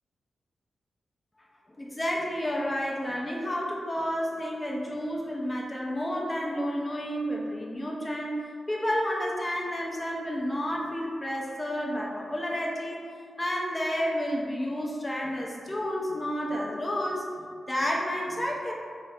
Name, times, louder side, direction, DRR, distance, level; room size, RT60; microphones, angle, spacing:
voice 1, 1.8-8.3 8.7-13.0 13.4-18.7, equal, 25° left, -2 dB, 0.4 m, -30 dB
2.8 x 2.0 x 2.7 m, 2.1 s
supercardioid pair, 40°, 0 cm